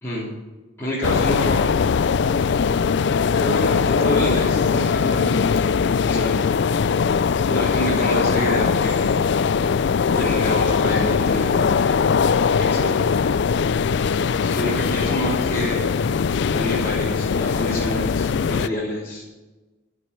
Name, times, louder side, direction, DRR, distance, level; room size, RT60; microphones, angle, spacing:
voice 1, 0.0-0.3 0.8-1.7 3.3-5.4 6.1-6.5 7.3-9.3 10.0-11.7 12.6-13.0 14.4-16.0 16.5-19.2, left 1 dB, 10° left, -9 dB, 3.7 m, -27 dB
sound 1, 1.0-18.7, left 6 dB, 60° left, 0.4 m, -20 dB
16.0 x 6.2 x 9.1 m, 1.2 s
head